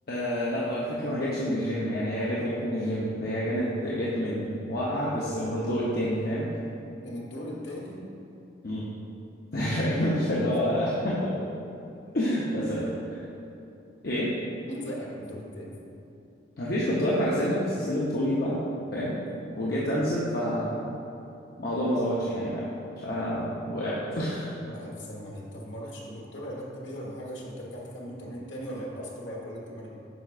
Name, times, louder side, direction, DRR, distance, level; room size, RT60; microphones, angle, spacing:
voice 1, 0.1-6.5 8.6-8.9 9.5-11.2 12.1-12.8 14.0-14.3 16.6-18.6 18.9-19.2 19.6-20.9 21.6-22.7 23.0-24.5, equal, 55° left, -7 dB, 0.8 m, -28 dB
voice 2, 7.0-8.0 10.8-11.2 12.5-13.0 14.6-15.8 24.6-29.9, equal, 85° left, -3 dB, 1.4 m, -39 dB
9.2 x 5.7 x 2.5 m, 2.9 s
head